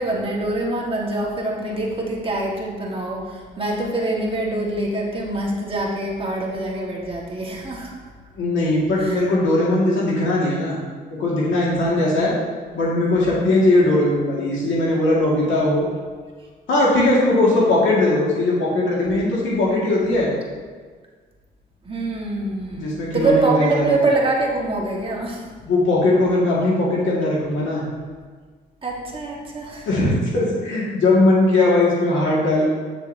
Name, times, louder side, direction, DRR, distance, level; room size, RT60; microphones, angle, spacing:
voice 1, 0.0-7.9 9.0-9.2 21.8-25.4 28.8-29.9, right 2 dB, 25° right, -2 dB, 1.5 m, -24 dB
voice 2, 8.4-10.8 11.1-12.3 12.7-15.9 16.7-20.3 22.7-24.0 25.6-27.8 29.9-32.7, left 2 dB, 75° left, -5 dB, 1.9 m, -19 dB
8.9 x 6.4 x 2.7 m, 1.5 s
cardioid pair, 90°, 20 cm